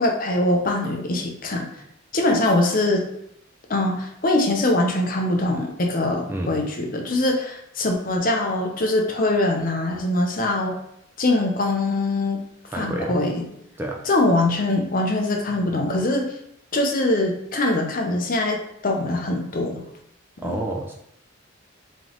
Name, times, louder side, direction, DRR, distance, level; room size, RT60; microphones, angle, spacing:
voice 1, 0.0-1.7 2.1-3.1 3.7-10.7 11.2-12.4 12.8-13.5 14.1-16.3 16.7-18.6 18.8-19.8 20.4-20.6, left 2 dB, 45° left, 2 dB, 0.6 m, -22 dB
voice 2, 12.7-13.2 13.8-14.0 15.5-15.6 20.4-20.9, right 1 dB, 10° right, 0 dB, 0.3 m, -29 dB
3.4 x 3.0 x 3.8 m, 0.76 s
head